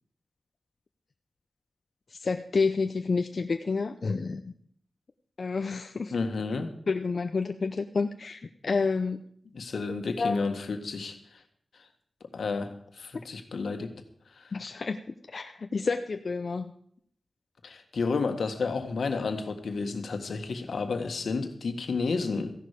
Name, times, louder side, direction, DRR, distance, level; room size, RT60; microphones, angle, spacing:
voice 1, 2.1-4.5 5.4-6.1 6.9-9.2 10.2-10.3 14.5-15.0 15.3-16.7, left 4 dB, 55° left, 7 dB, 0.6 m, -29 dB
voice 2, 6.1-6.7 9.5-11.4 12.3-13.9 14.3-14.5 17.6-22.5, left 4 dB, 85° left, 6 dB, 1.7 m, -31 dB
15.0 x 11.0 x 5.1 m, 0.64 s
wide cardioid pair, 105°, 0 cm